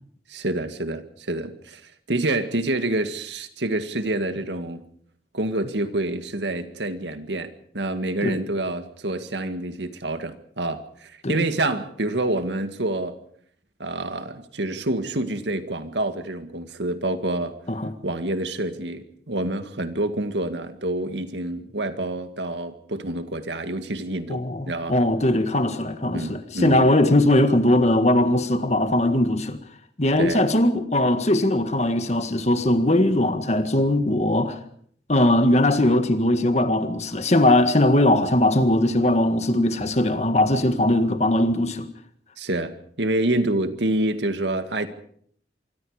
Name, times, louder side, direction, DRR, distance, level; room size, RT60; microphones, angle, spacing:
voice 1, 0.3-1.8 2.1-4.8 5.3-13.2 13.8-17.5 18.0-25.0 26.1-26.9 30.2-30.4 42.4-44.9, right 1 dB, 80° right, 2.0 m, -27 dB
voice 2, 24.3-29.6 30.0-34.6 35.1-41.9, left 1 dB, 40° left, 1.8 m, -20 dB
25.0 x 23.5 x 5.0 m
head